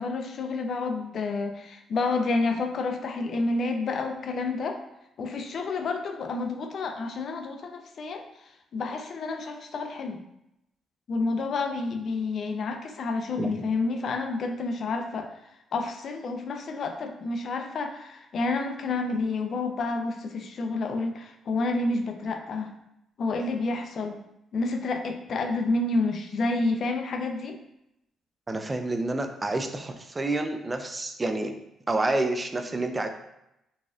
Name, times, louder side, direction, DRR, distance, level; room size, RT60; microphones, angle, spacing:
voice 1, 0.0-4.8 5.2-8.2 8.7-10.2 11.1-15.3 15.7-22.7 23.2-24.2 24.5-27.6, left 3 dB, 55° left, 5 dB, 0.4 m, -29 dB
voice 2, 28.5-31.5 31.9-33.1, right 2 dB, 25° right, 6 dB, 0.3 m, -28 dB
4.0 x 2.5 x 2.4 m, 0.85 s
cardioid pair, 90°, 0 cm